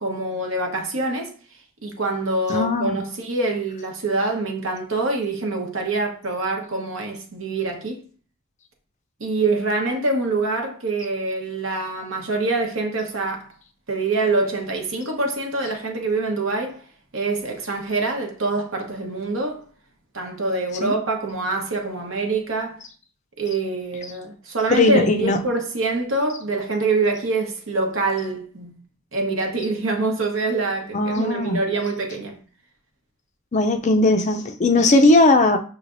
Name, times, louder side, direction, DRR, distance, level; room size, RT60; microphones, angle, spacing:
voice 1, 0.0-1.3 1.8-8.0 9.2-13.5 13.9-16.8 17.1-19.6 20.1-22.8 23.4-28.7 29.1-32.3, right 3 dB, 75° right, 1.0 m, -25 dB
voice 2, 2.5-3.0 20.8-20.9 24.7-25.4 30.9-31.6 33.5-35.6, left 2 dB, 35° left, 0.4 m, -18 dB
5.9 x 3.2 x 2.5 m
head